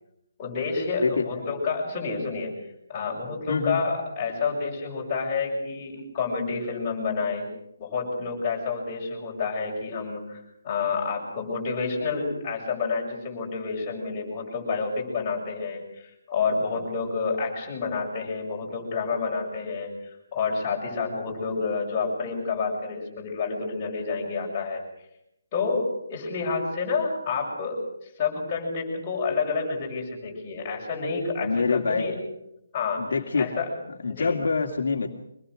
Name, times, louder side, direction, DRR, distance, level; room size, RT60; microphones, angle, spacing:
voice 1, 0.4-2.5 2.9-7.5 7.8-24.8 25.5-32.2 32.7-33.0 33.3-33.7 34.1-34.4, left 4 dB, 15° left, -4 dB, 6.7 m, -29 dB
voice 2, 3.5-3.8 31.4-32.1 33.0-33.5 34.0-35.1, left 4 dB, 55° left, 2 dB, 2.4 m, -25 dB
25.0 x 21.0 x 6.4 m, 0.80 s
hypercardioid pair, 180°, 0 cm